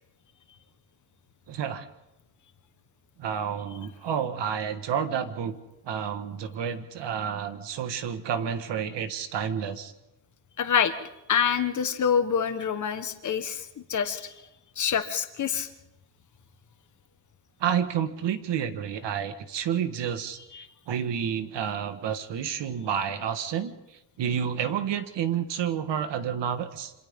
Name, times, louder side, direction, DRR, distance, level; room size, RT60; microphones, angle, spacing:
voice 1, 1.5-1.9 3.2-5.6 5.8-9.9 17.6-26.9, right 8 dB, 65° right, 9 dB, 1.8 m, -30 dB
voice 2, 10.6-10.9 11.3-14.3 14.8-15.7 20.5-20.7, left 7 dB, 40° left, 8 dB, 1.4 m, -26 dB
27.0 x 26.5 x 3.8 m, 0.94 s
cardioid pair, 170°, 47 cm